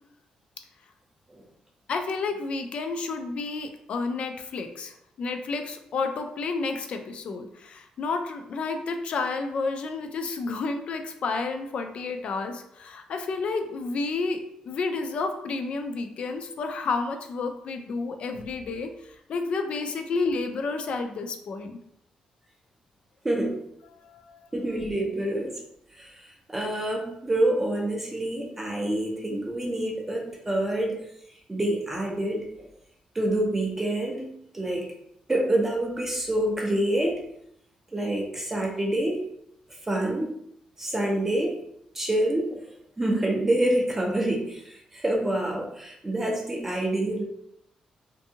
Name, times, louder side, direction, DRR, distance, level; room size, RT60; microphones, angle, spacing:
voice 1, 1.9-21.8 23.9-24.8, left 4 dB, 55° left, 6 dB, 0.3 m, -31 dB
voice 2, 23.2-23.6 24.5-25.6 25.9-31.0 31.5-32.7 33.1-34.9 35.3-37.2 37.9-39.2 39.9-40.3 40.8-41.6 41.9-42.7 43.0-47.2, right 1 dB, 15° right, 0 dB, 0.4 m, -27 dB
2.6 x 2.6 x 2.6 m, 0.75 s
cardioid pair, 145°, 2 cm